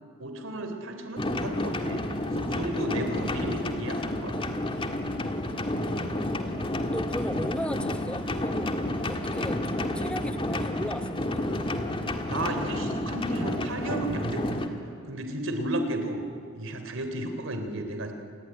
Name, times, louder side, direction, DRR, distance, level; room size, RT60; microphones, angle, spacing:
voice 1, 0.2-4.3 12.3-14.7 15.1-16.2 16.5-18.1, right 1 dB, 70° right, 6 dB, 3.4 m, -33 dB
sound 1, 1.2-14.7, left 1 dB, 25° left, 1.6 m, -30 dB
voice 2, 6.9-11.4, equal, 5° left, 9 dB, 0.9 m, -37 dB
27.0 x 20.0 x 10.0 m, 2.3 s
head